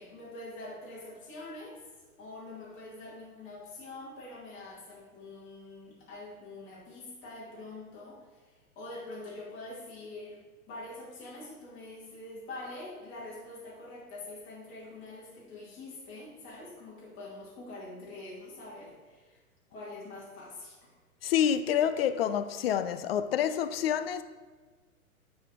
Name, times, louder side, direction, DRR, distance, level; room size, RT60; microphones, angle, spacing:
voice 1, 0.0-1.8 2.2-10.4 10.7-19.4 19.7-20.8, left 2 dB, 25° left, 2.4 m, -45 dB
voice 2, 21.2-24.2, left 9 dB, 45° left, 0.5 m, -28 dB
8.8 x 4.3 x 4.5 m
hypercardioid pair, 120°, 44 cm